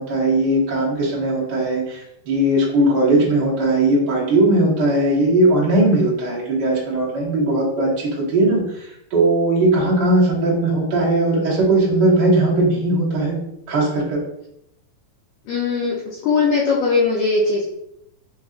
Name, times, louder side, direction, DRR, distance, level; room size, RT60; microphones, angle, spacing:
voice 1, 0.0-13.4 13.7-14.2, right 2 dB, 65° right, -6 dB, 1.0 m, -18 dB
voice 2, 15.5-16.0 16.2-17.6, left 4 dB, 80° left, -4 dB, 1.6 m, -19 dB
5.3 x 2.7 x 2.4 m, 0.77 s
omnidirectional pair, 3.9 m